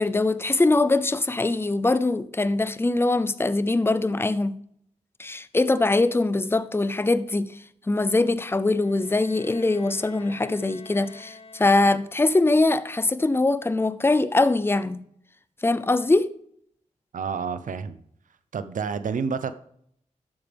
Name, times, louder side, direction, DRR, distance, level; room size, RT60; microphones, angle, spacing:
voice 1, 0.0-4.6 5.2-15.0 15.6-16.3, left 2 dB, 20° left, 0.6 m, -22 dB
Bowed string instrument, 8.6-12.3, left 4 dB, 45° left, 1.3 m, -48 dB
voice 2, 17.1-18.0 18.5-19.5, right 6 dB, 85° right, 0.7 m, -29 dB
12.0 x 8.9 x 3.5 m
cardioid pair, 70°, 13 cm